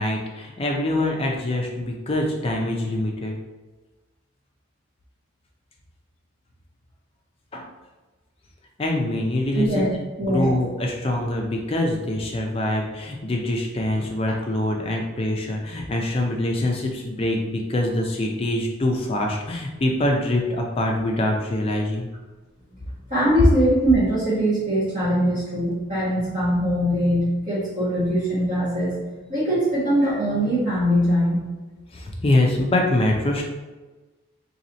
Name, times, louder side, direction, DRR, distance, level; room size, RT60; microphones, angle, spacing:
voice 1, 0.0-3.4 7.5-7.7 8.8-9.9 10.2-22.1 31.9-33.4, left 1 dB, 25° left, 1 dB, 0.4 m, -24 dB
voice 2, 9.5-9.9 10.2-10.5 23.1-29.0 29.3-31.5, equal, 35° right, -10 dB, 1.3 m, -22 dB
3.0 x 2.9 x 3.9 m, 1.2 s
head